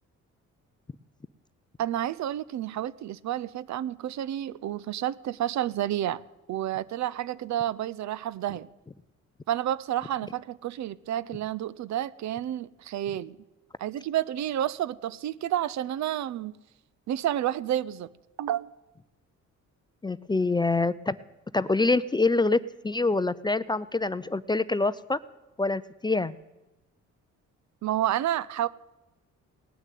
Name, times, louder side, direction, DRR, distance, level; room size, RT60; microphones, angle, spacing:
voice 1, 1.8-6.2 6.5-8.7 9.5-13.4 13.8-16.6 17.1-18.1 18.4-18.7 27.8-28.7, right 12 dB, 65° right, 0.6 m, -30 dB
voice 2, 20.0-21.2 21.5-25.2 25.6-26.3, left 3 dB, 15° left, 0.4 m, -25 dB
18.0 x 6.5 x 9.2 m
cardioid pair, 90°, 30 cm